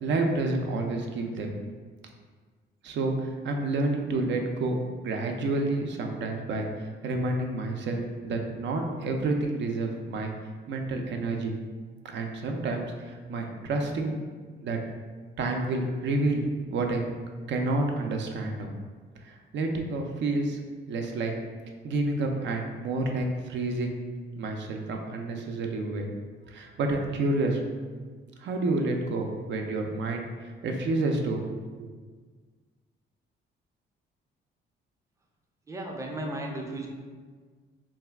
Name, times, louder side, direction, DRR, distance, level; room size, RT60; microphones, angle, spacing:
voice 1, 0.0-1.6 2.8-10.3 10.7-11.5 12.1-14.8 15.4-16.4 16.7-17.0 17.5-18.7 19.2-20.6 20.9-21.3 21.8-24.0 24.4-26.1 26.5-27.6 28.4-31.9, right 2 dB, 65° right, 3 dB, 0.5 m, -29 dB
voice 2, 35.7-36.9, right 1 dB, 15° right, 1 dB, 0.5 m, -34 dB
2.7 x 2.3 x 3.3 m, 1.5 s
cardioid pair, 90°, 20 cm